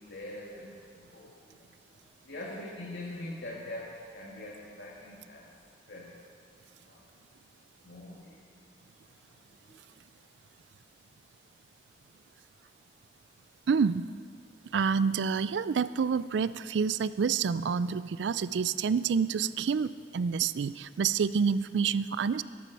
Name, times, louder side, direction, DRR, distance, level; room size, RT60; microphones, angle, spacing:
voice 1, 0.0-1.6 2.2-5.5 5.9-6.2 6.8-7.0 7.8-8.4 9.3-9.8, left 1 dB, 75° left, -4 dB, 1.7 m, -43 dB
voice 2, 13.7-14.1 14.7-22.4, right 6 dB, 85° right, 16 dB, 0.4 m, -28 dB
18.0 x 11.0 x 4.7 m, 2.1 s
head